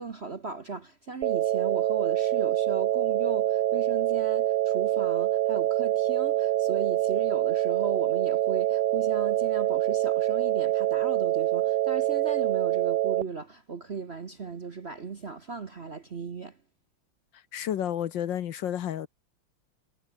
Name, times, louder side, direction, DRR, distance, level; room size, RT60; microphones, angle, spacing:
voice 1, 0.0-16.6, right 4 dB, 40° right, 1.0 m, -37 dB
sound 1, 1.2-13.2, right 13 dB, 65° right, 1.2 m, -25 dB
voice 2, 17.5-19.1, left 10 dB, 65° left, 1.5 m, -31 dB
omnidirectional pair, 2.4 m